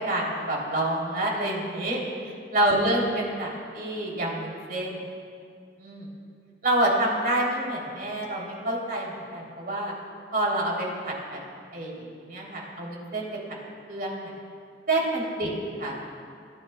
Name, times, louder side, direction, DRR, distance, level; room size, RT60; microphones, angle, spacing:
voice 1, 0.0-2.0 2.5-5.0 5.8-6.1 6.6-9.9 10.3-11.4 11.7-13.3 13.9-14.3 14.9-15.5 15.8-15.9, right 1 dB, 55° right, -3 dB, 3.3 m, -27 dB
26.0 x 14.5 x 2.3 m, 2.3 s
head